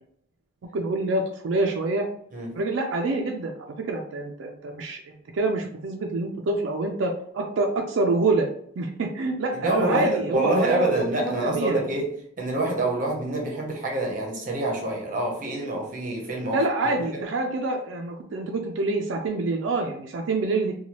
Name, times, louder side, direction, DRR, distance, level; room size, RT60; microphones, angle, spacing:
voice 1, 0.7-2.1 2.5-3.5 3.8-5.0 5.3-8.5 8.8-11.8 16.5-20.7, right 2 dB, 75° right, 0.4 m, -26 dB
voice 2, 9.5-12.1 12.4-17.2, right 1 dB, 40° right, 0.7 m, -27 dB
2.9 x 2.2 x 2.9 m
head